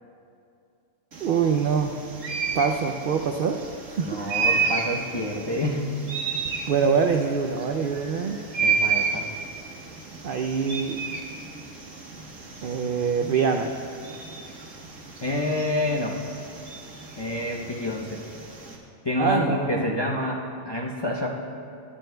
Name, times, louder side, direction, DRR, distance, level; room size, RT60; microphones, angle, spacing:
sound 1, 1.1-18.8, right 5 dB, 65° right, 1.6 m, -32 dB
voice 1, 1.2-1.9 2.5-3.6 3.9-4.2 6.7-8.4 10.2-11.0 12.6-13.8 19.2-19.9, right 6 dB, 80° right, 5 dB, 0.4 m, -24 dB
voice 2, 4.0-5.9 8.6-9.3 15.2-16.2 17.2-18.2 19.0-21.4, left 1 dB, 35° left, -2 dB, 0.4 m, -28 dB
17.0 x 11.0 x 2.2 m, 2.5 s
omnidirectional pair, 1.5 m